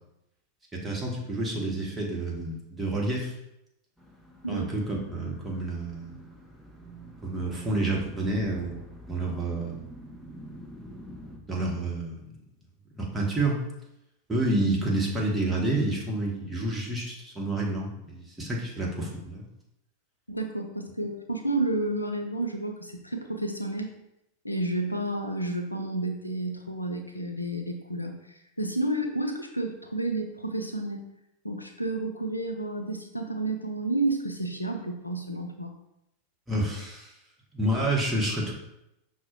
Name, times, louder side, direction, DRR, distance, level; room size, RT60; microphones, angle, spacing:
voice 1, 0.7-3.3 4.5-6.2 7.2-8.7 9.1-9.8 11.5-12.3 12.9-13.6 14.3-19.4 36.5-37.1 37.5-38.5, right 2 dB, 10° right, -2 dB, 1.0 m, -29 dB
sound 1, 4.0-11.4, right 1 dB, 5° left, 0.6 m, -46 dB
voice 2, 20.3-23.9 24.4-31.0 31.4-35.7, right 2 dB, 85° left, 4 dB, 0.4 m, -31 dB
5.8 x 2.0 x 3.0 m, 0.84 s
figure-of-eight pair, 90°, 0 cm